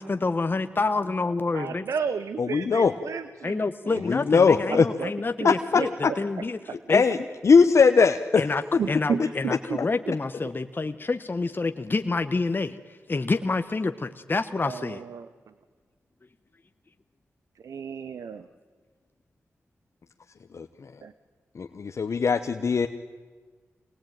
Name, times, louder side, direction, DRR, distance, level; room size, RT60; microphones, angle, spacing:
voice 1, 0.0-1.8 3.4-7.0 8.4-8.6 8.9-15.0, left 3 dB, 40° left, 9 dB, 1.0 m, -28 dB
voice 2, 1.5-3.6 4.7-5.1 5.4-5.9 6.7-6.8 8.8-9.8 14.6-15.3 17.6-18.4 21.0-21.1, right 6 dB, 85° right, 13 dB, 0.8 m, -32 dB
voice 3, 2.4-2.9 4.1-4.9 5.4-5.5 6.0-6.1 6.9-7.2 7.4-8.4 20.5-20.7 21.6-22.9, left 5 dB, 65° left, 7 dB, 0.9 m, -19 dB
24.5 x 19.5 x 9.1 m, 1.5 s
cardioid pair, 50°, 5 cm